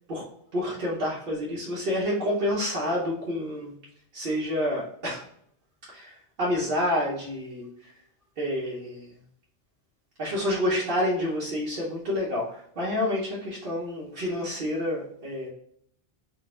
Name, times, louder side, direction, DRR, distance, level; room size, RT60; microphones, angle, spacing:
voice 1, 0.5-3.7 4.1-5.2 5.9-7.9 8.4-9.1 10.2-15.5, left 1 dB, 60° right, -6 dB, 1.1 m, -28 dB
3.9 x 2.5 x 3.6 m, 0.66 s
omnidirectional pair, 1.0 m